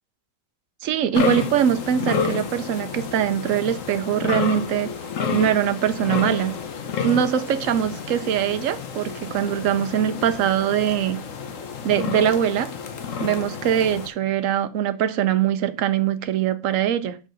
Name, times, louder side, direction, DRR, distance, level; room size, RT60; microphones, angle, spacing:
voice 1, 0.8-4.9 5.3-6.5 7.0-11.2 11.8-12.7 13.2-17.2, right 9 dB, 75° right, 1.0 m, -22 dB
sound 1, 1.1-14.1, left 6 dB, 70° left, 1.3 m, -30 dB
6.7 x 5.0 x 3.9 m
omnidirectional pair, 1.4 m